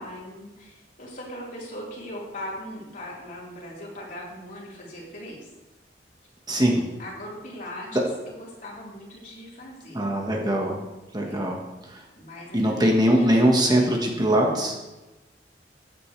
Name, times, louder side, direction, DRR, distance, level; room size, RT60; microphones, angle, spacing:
voice 1, 0.0-5.5 7.0-10.0 11.2-11.5 12.2-14.8, equal, 50° left, -5 dB, 3.9 m, -40 dB
voice 2, 6.5-6.8 9.9-10.9 11.1-12.0 12.5-14.8, right 1 dB, 25° right, 0 dB, 1.4 m, -22 dB
15.0 x 9.1 x 3.3 m, 1.1 s
head